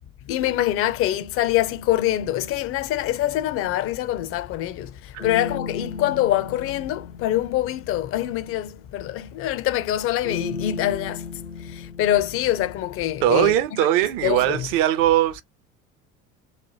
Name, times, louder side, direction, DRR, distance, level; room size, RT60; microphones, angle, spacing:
voice 1, 0.3-11.3 11.6-13.5 14.2-14.7, left 13 dB, 35° left, 0.4 m, -24 dB
sound 1, 3.1-4.1 5.2-9.2 10.2-13.4, left 4 dB, 80° left, 0.8 m, -36 dB
voice 2, 13.2-15.4, right 13 dB, 50° right, 0.6 m, -20 dB
3.2 x 2.1 x 2.8 m
figure-of-eight pair, 65°, 41 cm